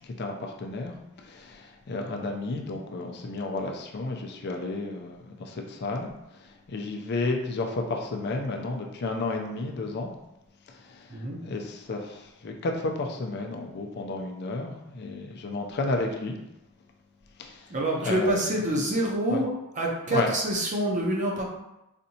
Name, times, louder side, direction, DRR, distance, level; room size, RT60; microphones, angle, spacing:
voice 1, 0.0-10.1 10.8-16.3 17.4-17.7 18.0-18.5 19.3-19.4 20.1-20.3, left 2 dB, 50° left, 2 dB, 0.4 m, -32 dB
voice 2, 17.7-19.5 19.7-21.4, right 1 dB, 35° right, -1 dB, 0.6 m, -26 dB
4.2 x 2.7 x 2.7 m, 0.90 s
head